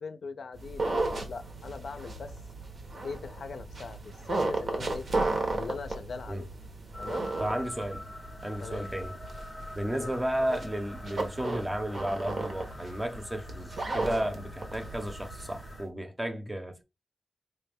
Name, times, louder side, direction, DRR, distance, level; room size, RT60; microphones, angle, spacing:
voice 1, 0.0-2.3 3.0-5.1 5.5-6.5 7.0-7.3 8.6-8.9 9.9-10.1, left 4 dB, 75° left, 0.4 m, -40 dB
creaking floorboards, 0.5-15.8, right 2 dB, 65° right, 0.9 m, -35 dB
sound 1, 6.9-15.9, left 1 dB, 25° left, 0.5 m, -46 dB
voice 2, 7.4-8.0 8.4-9.2 9.7-16.8, right 1 dB, 15° right, 0.7 m, -33 dB
4.3 x 2.1 x 3.4 m
wide cardioid pair, 115°, 0 cm